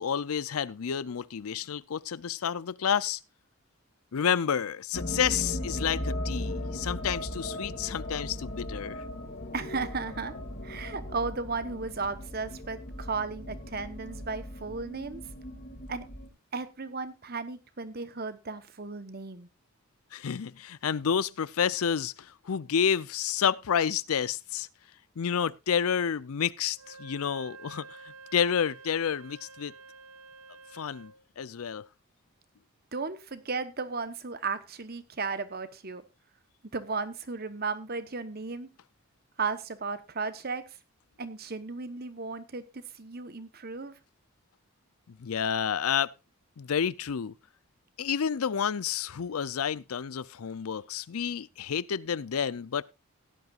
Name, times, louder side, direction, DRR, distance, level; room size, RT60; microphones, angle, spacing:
voice 1, 0.0-3.2 4.1-9.0 20.1-24.7 25.2-29.7 30.7-31.8 45.1-46.1 46.6-47.3 48.0-52.8, left 7 dB, 75° left, 0.5 m, -30 dB
sound 1, 4.9-16.3, left 1 dB, 50° left, 2.6 m, -37 dB
voice 2, 9.5-10.3 10.6-15.2 15.9-16.0 16.5-19.5 32.9-36.0 36.7-38.7 39.4-40.8 41.2-44.0, right 4 dB, 45° right, 1.1 m, -35 dB
Wind instrument woodwind instrument, 26.7-31.2, right 4 dB, 80° right, 1.1 m, -49 dB
17.0 x 11.0 x 2.5 m
head